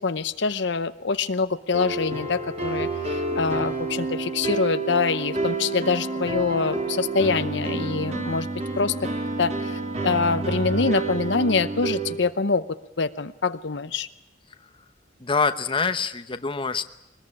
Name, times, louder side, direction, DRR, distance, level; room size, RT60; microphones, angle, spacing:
voice 1, 0.0-8.5 8.8-8.9 9.4-12.6 13.0-14.1, left 4 dB, 65° left, 12 dB, 0.8 m, -25 dB
sound 1, 1.7-12.2, right 2 dB, 35° right, 3.3 m, -29 dB
voice 2, 15.2-16.9, left 4 dB, 25° left, 10 dB, 0.9 m, -25 dB
22.0 x 20.5 x 9.9 m, 0.88 s
head